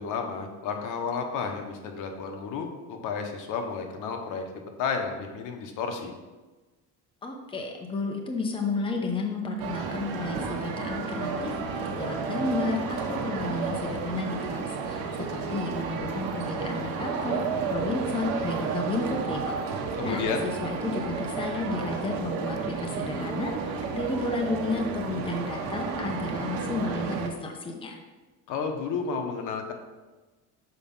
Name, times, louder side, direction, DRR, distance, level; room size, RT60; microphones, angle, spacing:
voice 1, 0.0-4.4 4.8-6.1 20.0-20.5 28.5-29.7, left 5 dB, 65° left, 4 dB, 1.2 m, -32 dB
voice 2, 7.2-15.0 15.3-17.4 17.7-28.0, left 2 dB, 15° left, 2 dB, 0.8 m, -32 dB
sound 1, 9.6-27.3, right 4 dB, 90° right, 1.1 m, -32 dB
6.8 x 5.0 x 5.5 m, 1.2 s
cardioid pair, 145°, 34 cm